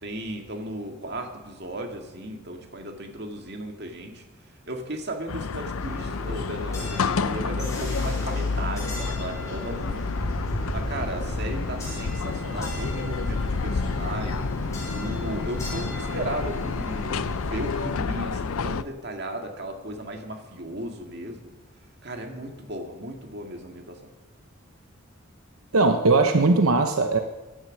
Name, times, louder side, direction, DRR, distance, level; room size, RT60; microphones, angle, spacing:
voice 1, 0.0-4.2 4.7-10.0 10.7-14.5 14.9-21.5 22.0-24.0, right 1 dB, 50° right, 4 dB, 2.1 m, -35 dB
sound 1, 5.3-18.8, left 4 dB, 85° left, 0.6 m, -29 dB
sound 2, 5.7-17.8, equal, 15° left, 6.2 m, -35 dB
voice 2, 25.7-27.2, right 3 dB, 80° right, 6 dB, 0.9 m, -19 dB
15.5 x 11.5 x 6.5 m, 1.1 s
head